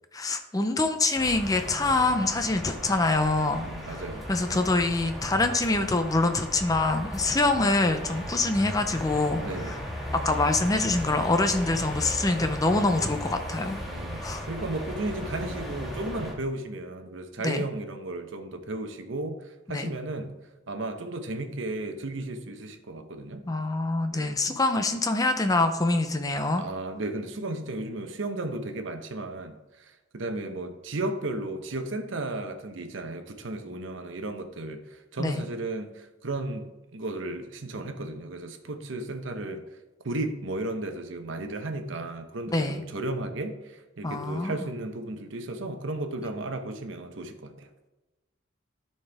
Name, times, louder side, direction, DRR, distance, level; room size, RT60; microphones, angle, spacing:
voice 1, 0.1-3.6 3.9-4.0 4.3-9.8 10.1-13.8 14.2-14.5 17.4-17.6 19.7-19.9 23.5-26.6 35.2-35.4 42.5-42.8 44.0-44.6, left 2 dB, 20° left, 7 dB, 0.5 m, -25 dB
sound 1, 1.1-16.3, equal, ahead, 1.5 m, -36 dB
voice 2, 3.6-4.7 7.2-7.4 8.1-8.3 9.4-9.8 13.9-20.3 20.7-23.4 24.1-24.4 26.6-36.6 36.9-39.6 40.0-47.7, right 2 dB, 75° right, 7 dB, 0.8 m, -34 dB
13.0 x 4.4 x 3.4 m, 1.1 s
head